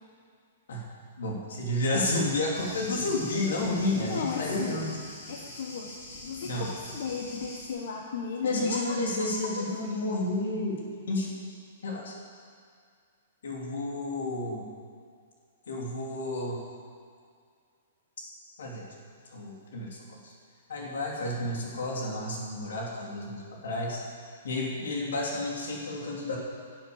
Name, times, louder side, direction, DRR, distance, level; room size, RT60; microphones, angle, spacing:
voice 1, 1.2-4.9 6.4-6.7 8.4-10.8 11.1-11.3 11.8-12.1 13.4-14.6 15.7-16.6 18.2-18.3 18.6-18.8 19.3-20.2 20.7-24.0 24.4-26.4, left 2 dB, 85° left, -2 dB, 3.3 m, -31 dB
Thunder, 2.5-7.7, left 2 dB, 45° left, 2.9 m, -43 dB
voice 2, 4.1-4.9 5.3-5.9 6.2-9.7, left 5 dB, 60° left, 0 dB, 1.2 m, -36 dB
12.5 x 7.8 x 7.2 m, 2.1 s
hypercardioid pair, 160°, 0 cm